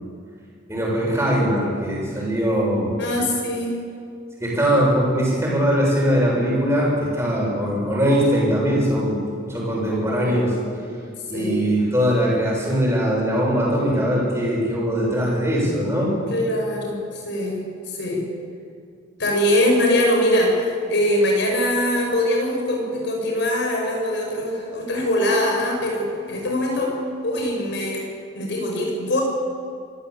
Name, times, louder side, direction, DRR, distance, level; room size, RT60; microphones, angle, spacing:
voice 1, 0.7-2.9 4.4-9.2 9.5-10.5 11.3-16.1, equal, 15° right, -4 dB, 7.2 m, -21 dB
voice 2, 3.0-3.8 7.6-7.8 10.2-10.4 11.3-11.6 16.3-18.3 19.2-20.6 20.9-26.9 27.2-28.0 28.3-29.2, left 1 dB, 60° left, 0 dB, 6.3 m, -22 dB
25.0 x 15.0 x 8.5 m, 2.3 s
head